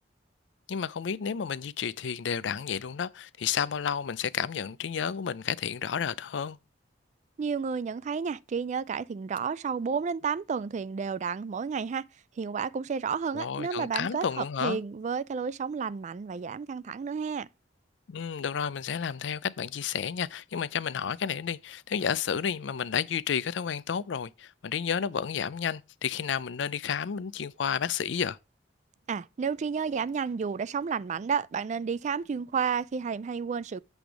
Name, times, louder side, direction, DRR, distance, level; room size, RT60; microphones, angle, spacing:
voice 1, 0.7-6.6 13.3-14.8 18.1-28.4, left 7 dB, 75° left, 0.4 m, -31 dB
voice 2, 7.4-12.1 12.4-17.5 29.1-33.8, right 6 dB, 40° right, 0.3 m, -31 dB
8.1 x 3.4 x 6.0 m
head